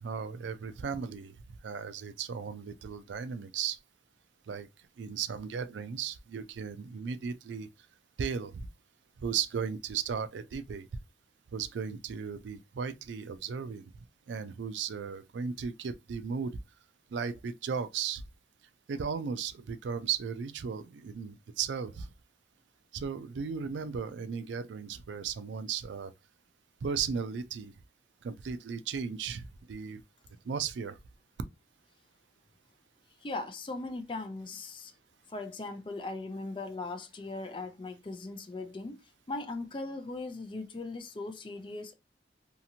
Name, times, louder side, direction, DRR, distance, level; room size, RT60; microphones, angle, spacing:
voice 1, 0.0-1.3 1.6-3.8 4.5-4.7 5.0-7.7 8.2-8.7 9.2-10.9 11.5-13.8 14.3-16.5 17.1-18.2 18.9-22.1 22.9-26.1 26.8-27.7 28.2-30.0 30.5-31.0, right 6 dB, 90° right, 0.4 m, -36 dB
voice 2, 33.2-34.9 35.3-39.0 39.3-41.9, left 2 dB, 30° left, 0.4 m, -39 dB
2.8 x 2.5 x 2.7 m
head